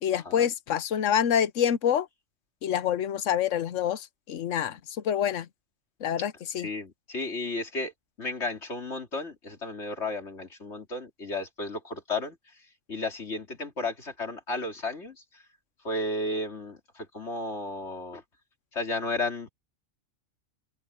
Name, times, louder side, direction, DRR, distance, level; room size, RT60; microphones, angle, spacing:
voice 1, 0.0-2.1 2.6-4.8 5.0-5.5 6.0-6.7, left 9 dB, 90° left, 1.2 m, -26 dB
voice 2, 6.6-7.9 8.2-12.3 12.9-15.1 15.8-18.2 18.7-19.5, left 2 dB, 65° left, 3.3 m, -33 dB
open air
omnidirectional pair, 1.2 m